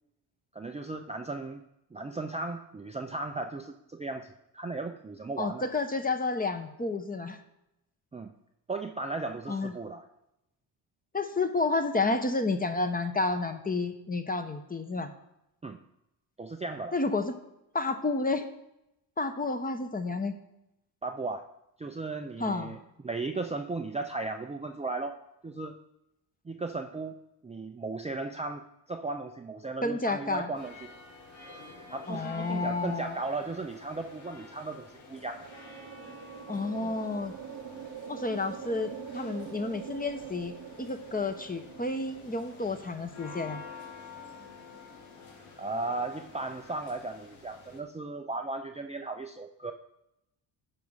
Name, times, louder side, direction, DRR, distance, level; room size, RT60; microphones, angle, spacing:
voice 1, 0.5-1.6 1.9-5.6 8.1-8.3 8.7-10.0 15.6-15.8 16.4-16.9 21.0-21.5 21.8-22.8 23.0-25.2 25.4-25.8 26.5-27.2 27.4-30.8 31.9-35.5 36.8-36.9 45.6-49.7, right 3 dB, 15° right, 4 dB, 0.5 m, -36 dB
voice 2, 5.4-7.4 9.5-9.7 11.1-15.1 16.9-17.3 17.7-18.4 19.2-20.3 22.4-22.7 29.8-30.5 32.1-33.2 36.5-37.3 38.1-40.5 40.8-43.6, left 3 dB, 20° left, 8 dB, 0.9 m, -30 dB
sound 1, 30.5-47.8, left 4 dB, 80° left, 1.8 m, -49 dB
sound 2, 35.0-42.7, right 8 dB, 45° right, 0.9 m, -44 dB
10.0 x 4.8 x 5.5 m, 0.86 s
cardioid pair, 75°, 46 cm